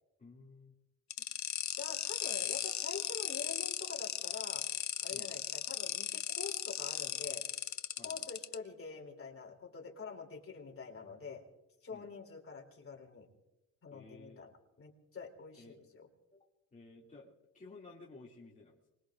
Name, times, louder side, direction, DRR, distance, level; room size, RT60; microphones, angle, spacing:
voice 1, 0.2-0.8 5.1-5.3 8.0-8.3 11.9-12.1 13.9-14.4 15.6-15.8 16.3-18.9, left 3 dB, 25° left, -4 dB, 2.5 m, -55 dB
sound 1, 1.1-8.5, left 10 dB, 55° left, 0.8 m, -37 dB
voice 2, 1.8-4.6 5.0-7.4 8.0-11.4 11.8-13.3 13.8-14.5 14.8-16.1, left 5 dB, 40° left, 1 dB, 3.2 m, -46 dB
25.0 x 22.0 x 2.5 m, 0.93 s
cardioid pair, 115°, 33 cm